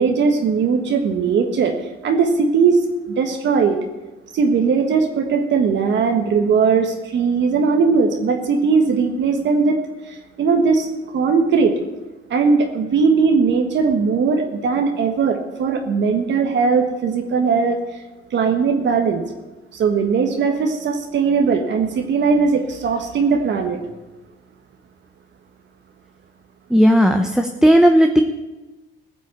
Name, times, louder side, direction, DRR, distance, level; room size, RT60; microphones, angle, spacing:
voice 1, 0.0-1.7 2.0-2.8 3.1-3.8 4.3-9.8 10.1-11.7 12.3-17.8 18.3-19.2 19.7-23.8, right 5 dB, 65° right, 4 dB, 1.4 m, -19 dB
voice 2, 26.7-28.2, equal, 5° right, 5 dB, 0.9 m, -14 dB
16.0 x 6.1 x 8.2 m, 1.1 s
cardioid pair, 90°, 20 cm